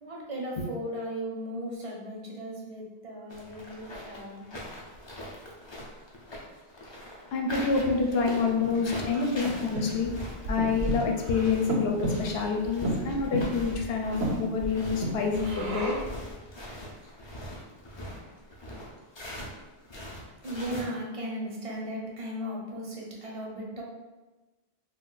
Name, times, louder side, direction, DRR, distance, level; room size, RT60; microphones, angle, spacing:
voice 1, 0.0-4.5 20.0-23.8, equal, 40° right, -2 dB, 0.5 m, -37 dB
sound 1, 3.3-19.5 19.8-20.8, equal, 40° left, 0.4 m, -42 dB
voice 2, 7.3-10.1 10.5-16.0, left 5 dB, 75° left, 1 dB, 0.8 m, -27 dB
Breathing, 7.7-16.2, right 2 dB, 80° right, 0.9 m, -34 dB
2.4 x 2.1 x 3.8 m, 1.2 s
omnidirectional pair, 1.1 m